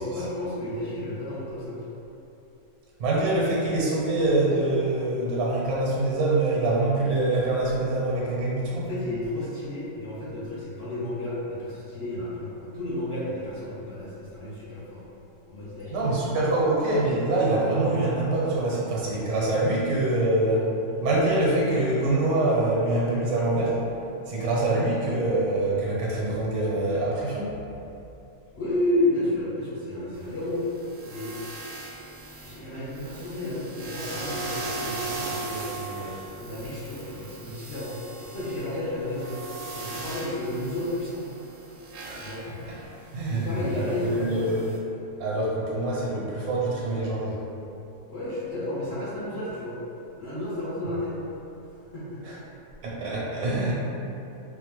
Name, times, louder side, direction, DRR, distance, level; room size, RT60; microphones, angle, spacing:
voice 1, 0.0-1.8 8.8-15.0 15.5-16.2 28.5-30.6 31.0-31.4 32.4-36.1 36.4-37.9 38.2-39.4 39.7-41.2 42.2-42.4 43.3-44.6 48.1-49.8 50.2-51.1 51.9-52.2 52.9-53.0, left 1 dB, 50° left, -9 dB, 1.0 m, -31 dB
voice 2, 3.0-8.9 15.9-20.7 21.0-23.8 24.3-27.5 42.0-42.2 42.7-42.8 43.1-44.6 45.2-47.4 52.2-52.4 52.8-53.7, right 2 dB, 80° right, -5 dB, 1.2 m, -25 dB
sound 1, 30.1-44.8, right 3 dB, 60° right, 0.7 m, -39 dB
4.4 x 2.1 x 3.0 m, 2.9 s
omnidirectional pair, 1.6 m